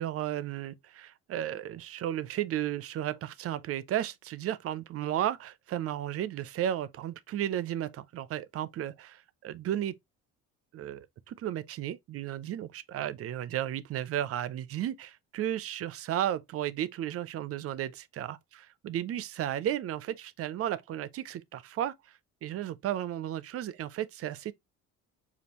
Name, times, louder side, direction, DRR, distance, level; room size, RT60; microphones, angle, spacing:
voice 1, 0.0-9.2 9.4-10.0 10.7-21.9 22.4-24.5, right 11 dB, 45° right, 0.4 m, -34 dB
5.2 x 2.4 x 2.9 m
cardioid pair, 105°, 32 cm